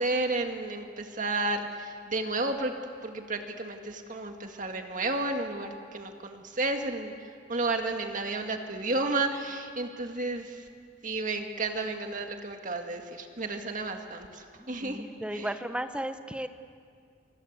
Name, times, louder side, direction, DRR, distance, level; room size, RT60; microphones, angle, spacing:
voice 1, 0.0-2.7 3.0-7.1 7.5-10.6 11.0-15.0 15.3-15.5, right 2 dB, 40° right, 4 dB, 2.0 m, -32 dB
voice 2, 14.6-16.5, right 1 dB, 5° right, 8 dB, 1.0 m, -35 dB
29.5 x 25.0 x 8.2 m, 2.2 s
head